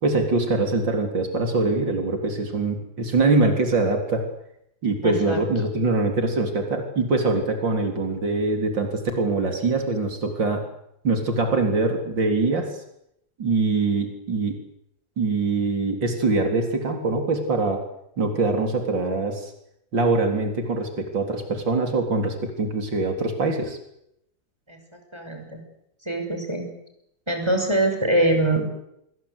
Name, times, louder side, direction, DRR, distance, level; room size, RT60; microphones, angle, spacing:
voice 1, 0.0-4.2 4.8-10.6 11.0-12.7 13.4-14.6 15.2-17.8 18.2-19.5 19.9-23.8, right 3 dB, 70° right, 4 dB, 4.4 m, -23 dB
voice 2, 5.0-5.4 24.7-24.8 25.1-25.6 26.1-26.7 27.3-28.6, right 1 dB, 15° right, 4 dB, 6.0 m, -23 dB
27.5 x 21.5 x 8.3 m, 0.78 s
omnidirectional pair, 2.1 m